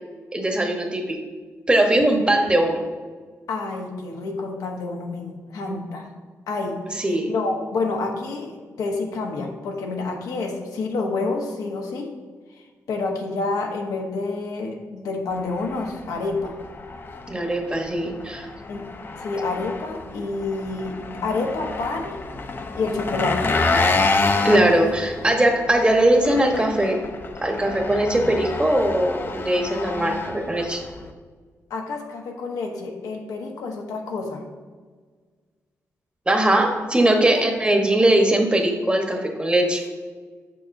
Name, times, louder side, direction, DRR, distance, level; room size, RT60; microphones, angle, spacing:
voice 1, 0.3-1.2 1.7-2.8 5.7-5.8 7.0-7.3 17.3-18.5 24.4-27.0 27.4-30.8 36.3-39.8, right 1 dB, 15° right, 3 dB, 1.0 m, -20 dB
voice 2, 3.5-6.1 6.5-12.1 12.9-16.5 18.7-18.9 19.2-22.2 22.7-23.5 31.7-34.4 37.3-37.4, left 3 dB, 85° left, 1 dB, 0.9 m, -28 dB
Engine, 15.3-31.1, left 3 dB, 35° left, 0.5 m, -28 dB
6.7 x 6.2 x 2.6 m, 1.5 s
cardioid pair, 80°, 6 cm